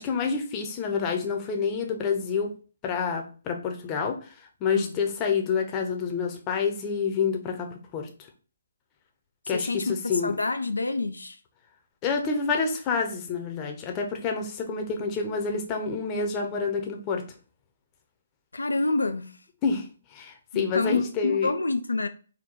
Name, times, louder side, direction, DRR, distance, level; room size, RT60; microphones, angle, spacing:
voice 1, 0.0-2.5 2.8-4.3 4.6-8.1 9.5-10.3 12.0-17.2 19.6-19.9 20.1-21.5, left 5 dB, 25° left, 0.7 m, -28 dB
voice 2, 9.5-9.9 10.2-11.4 18.5-19.4 20.5-22.1, left 3 dB, 85° left, 0.4 m, -28 dB
4.4 x 2.2 x 3.9 m
figure-of-eight pair, 140°, 0 cm